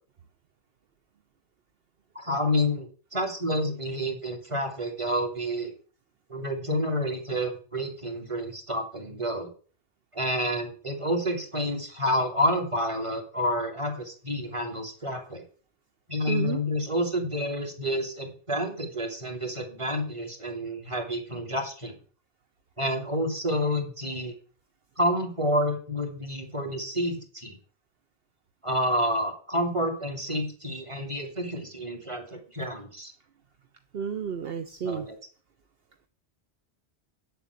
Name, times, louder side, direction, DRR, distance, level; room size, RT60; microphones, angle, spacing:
voice 1, 2.1-5.7 6.3-9.5 10.1-15.4 16.1-21.9 22.8-24.3 25.0-27.6 28.6-33.1 34.8-35.1, equal, 25° right, 4 dB, 2.9 m, -29 dB
voice 2, 16.3-16.6 33.9-35.1, right 7 dB, 65° right, 8 dB, 1.0 m, -31 dB
8.7 x 7.8 x 8.2 m, 0.41 s
omnidirectional pair, 1.1 m